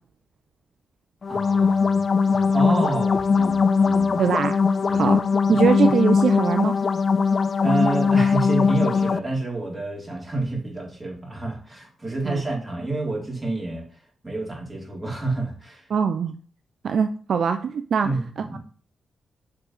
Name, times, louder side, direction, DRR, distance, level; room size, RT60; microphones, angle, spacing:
sound 1, 1.2-9.2, left 5 dB, 50° left, 0.4 m, -20 dB
voice 1, 1.3-4.2 4.9-5.2 5.5-5.7 7.6-13.8 14.2-15.9 18.0-18.6, right 2 dB, 20° right, -1 dB, 3.7 m, -29 dB
voice 2, 4.2-4.6 4.9-5.2 5.5-6.7 12.2-12.4 15.9-16.3 16.8-18.1, right 6 dB, 65° right, 9 dB, 0.5 m, -22 dB
6.7 x 3.9 x 5.6 m, 0.44 s
supercardioid pair, 50°, 0 cm